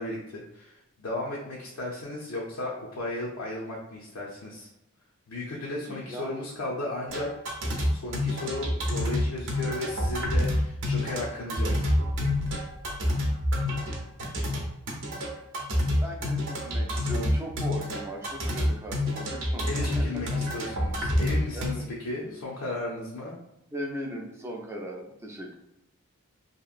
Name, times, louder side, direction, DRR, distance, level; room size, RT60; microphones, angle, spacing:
voice 1, 0.0-4.7 5.3-7.3 7.9-11.7 19.6-21.7 22.0-23.3, left 2 dB, 70° left, -4 dB, 0.6 m, -35 dB
voice 2, 5.9-6.4 16.0-19.7 19.9-20.0 20.3-20.4 21.5-21.9 22.2-22.4 23.7-25.5, equal, 10° right, -1 dB, 0.4 m, -38 dB
sound 1, 7.1-21.7, left 1 dB, 55° right, 0.7 m, -28 dB
2.8 x 2.5 x 2.4 m, 0.87 s
head